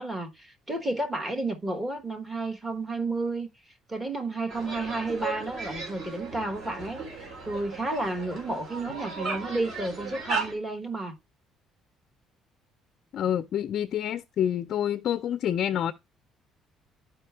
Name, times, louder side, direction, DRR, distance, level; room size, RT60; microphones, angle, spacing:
voice 1, 0.0-3.5 3.9-11.2, right 2 dB, 15° right, 1.3 m, -31 dB
sound 1, 4.5-10.5, right 4 dB, 50° right, 3.7 m, -36 dB
voice 2, 13.1-15.9, left 10 dB, 50° left, 0.4 m, -27 dB
11.5 x 4.9 x 3.4 m
cardioid pair, 160°, 0 cm